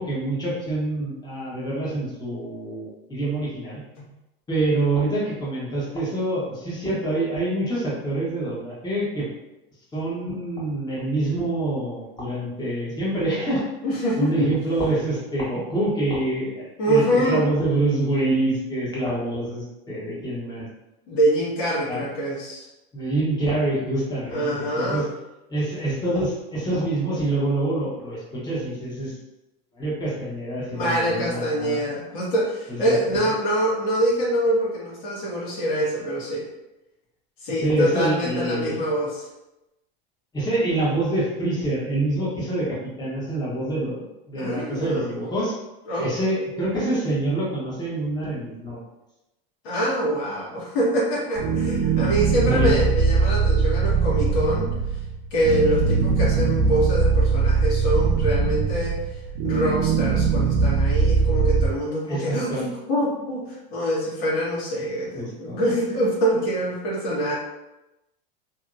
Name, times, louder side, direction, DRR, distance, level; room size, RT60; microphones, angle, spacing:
voice 1, 0.0-3.8 4.5-9.3 9.9-13.7 14.2-20.7 21.8-22.0 22.9-25.0 25.5-29.1 29.7-31.8 32.8-33.3 37.6-38.8 40.3-45.5 46.0-48.8 52.4-52.7 62.1-62.7 65.2-65.6, right 2 dB, 15° left, -7 dB, 1.2 m, -26 dB
voice 2, 13.8-14.5 16.8-17.4 21.1-22.7 24.3-25.1 30.7-36.4 37.4-39.2 44.3-45.1 45.9-46.1 49.6-54.7 55.3-59.2 59.4-67.4, equal, 65° left, -6 dB, 1.4 m, -25 dB
sound 1, 51.4-61.7, right 5 dB, 60° right, 0.5 m, -21 dB
2.8 x 2.7 x 2.5 m, 0.96 s
hypercardioid pair, 95°, 29 cm